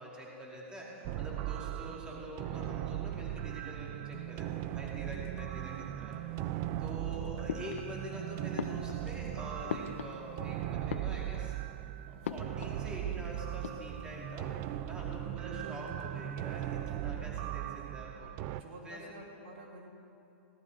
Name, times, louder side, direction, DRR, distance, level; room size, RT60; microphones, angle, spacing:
voice 1, 0.0-6.2 6.8-11.6 12.1-14.5 14.9-18.4 18.8-19.0, right 1 dB, 10° right, -3 dB, 2.5 m, -45 dB
sound 1, 1.0-18.6, right 13 dB, 35° right, 0.4 m, -38 dB
voice 2, 5.6-5.9 15.4-16.2 18.6-19.9, right 2 dB, 60° right, 0 dB, 2.2 m, -48 dB
sound 2, 7.5-8.2 8.6-10.5 10.8-11.6 12.2-12.9 13.1-13.2 13.5-14.2, left 7 dB, 75° left, 0.7 m, -41 dB
17.0 x 12.0 x 4.1 m, 2.7 s
hypercardioid pair, 130°, 7 cm